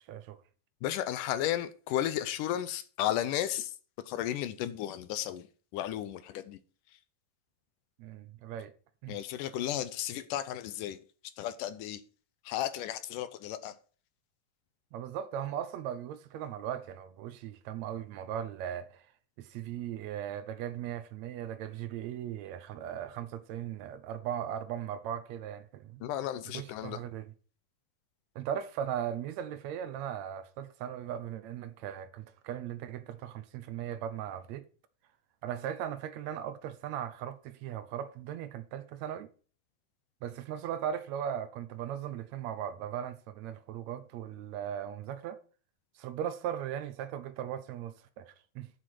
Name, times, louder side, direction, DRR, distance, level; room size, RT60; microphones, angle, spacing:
voice 1, 0.1-0.4 8.0-8.7 9.0-9.2 14.9-19.0 19.4-26.0 26.5-27.3 28.4-34.7 35.4-39.3 40.2-45.4 46.0-48.7, right 10 dB, 80° right, 1.6 m, -38 dB
voice 2, 0.8-3.7 4.1-5.5 5.7-6.6 9.1-11.0 11.4-12.0 12.5-13.8 26.0-27.0, left 12 dB, 75° left, 2.1 m, -34 dB
8.4 x 7.6 x 5.9 m
omnidirectional pair, 4.0 m